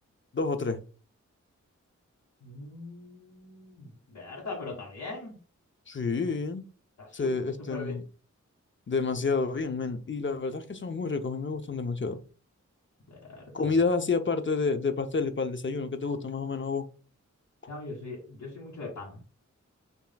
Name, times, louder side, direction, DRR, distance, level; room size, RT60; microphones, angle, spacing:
voice 1, 0.3-0.8 5.9-6.6 7.1-8.0 8.9-12.2 13.5-16.8, left 4 dB, 40° left, 0.7 m, -29 dB
voice 2, 2.4-5.3 7.0-7.3 7.6-7.9 13.1-13.8 17.7-19.2, left 3 dB, 80° left, 1.7 m, -41 dB
5.6 x 3.0 x 2.2 m
cardioid pair, 55°, 30 cm